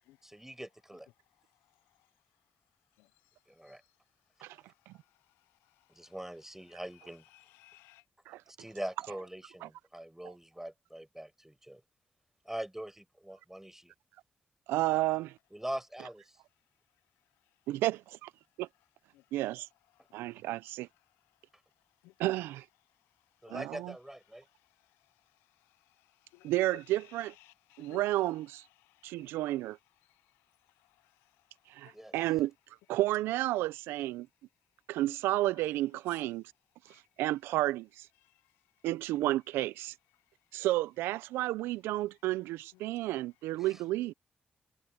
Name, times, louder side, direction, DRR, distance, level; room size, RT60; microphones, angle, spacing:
voice 1, 0.2-1.1 3.5-3.8 5.9-7.2 8.5-11.8 12.4-13.9 15.5-16.4 23.4-24.5 31.9-32.1 43.6-43.8, right 1 dB, 10° right, 6.1 m, -43 dB
voice 2, 7.3-8.0 19.1-19.2 22.0-22.1 26.3-26.5 27.4-28.0 29.0-29.3 31.8-32.2 36.9-37.0, left 18 dB, 90° left, 0.7 m, -59 dB
voice 3, 14.7-15.3 17.7-18.3 18.6-18.7 19.3-19.7 20.1-20.9 22.2-22.6 23.5-23.9 26.4-27.3 27.8-28.6 29.0-29.8 31.7-32.5 32.9-34.3 34.9-36.4 37.2-38.1 38.8-39.9 40.5-44.1, right 16 dB, 85° right, 0.5 m, -31 dB
hypercardioid pair, 40°, 4 cm